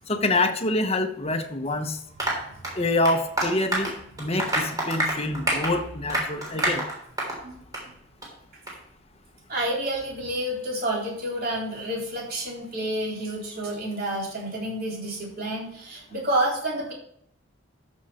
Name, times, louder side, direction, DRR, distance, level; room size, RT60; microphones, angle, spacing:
voice 1, 0.1-2.0 2.8-6.8, left 2 dB, 30° left, 6 dB, 1.1 m, -26 dB
Applause, 2.2-7.4 7.7-7.9 8.2-8.3 8.7-8.8, right 1 dB, 20° right, 3.5 m, -28 dB
voice 2, 9.5-16.9, right 1 dB, 50° right, -3 dB, 3.8 m, -29 dB
13.5 x 6.5 x 4.3 m, 0.67 s
head